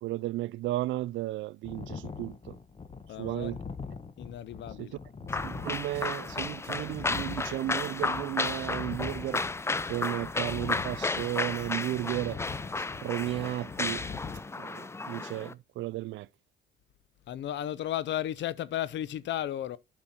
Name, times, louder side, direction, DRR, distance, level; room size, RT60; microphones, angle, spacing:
voice 1, 0.0-2.6 3.2-3.6 4.8-4.9 5.4-9.4 9.9-12.4 12.8-14.0 14.6-16.3, right 16 dB, 75° right, 0.4 m, -34 dB
sound 1, 1.6-14.4, left 5 dB, 30° left, 1.2 m, -42 dB
voice 2, 3.1-3.5 4.2-5.0 17.3-19.8, left 12 dB, 65° left, 0.6 m, -34 dB
sound 2, 5.3-15.5, left 3 dB, 15° left, 0.4 m, -33 dB
8.6 x 5.8 x 4.2 m
cardioid pair, 90°, 20 cm